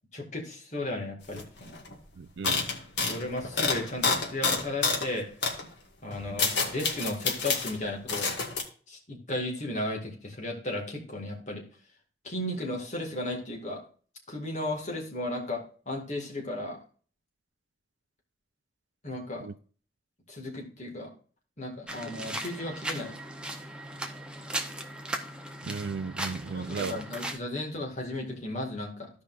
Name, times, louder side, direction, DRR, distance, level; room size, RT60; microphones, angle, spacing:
voice 1, 0.1-1.8 3.0-5.3 6.0-8.4 8.9-11.6 12.2-13.8 14.3-16.8 19.0-19.5 20.3-21.1 21.6-23.2 26.5-29.1, left 1 dB, 40° left, 2.0 m, -35 dB
sound 1, 1.3-1.4 1.7-1.9 2.4-5.1 5.4-5.6 6.1-7.7 8.1-8.6, left 4 dB, 80° left, 1.7 m, -28 dB
voice 2, 2.2-2.7 19.4-19.5 25.6-27.0, right 5 dB, 85° right, 0.4 m, -35 dB
sound 2, 21.9-27.4, right 1 dB, 5° right, 0.7 m, -37 dB
14.5 x 5.2 x 2.5 m
head